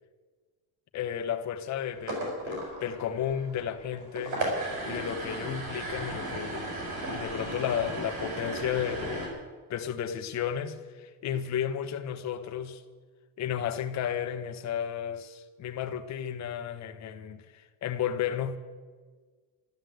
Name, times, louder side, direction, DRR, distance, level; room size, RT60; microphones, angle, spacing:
voice 1, 0.9-4.4 4.9-6.7 7.1-9.4 9.7-12.8 13.4-18.6, left 9 dB, 45° left, 7 dB, 1.2 m, -33 dB
sound 1, 1.9-9.3, right 2 dB, 50° right, 6.2 m, -35 dB
13.5 x 12.5 x 7.9 m, 1.4 s
cardioid pair, 170°, 40 cm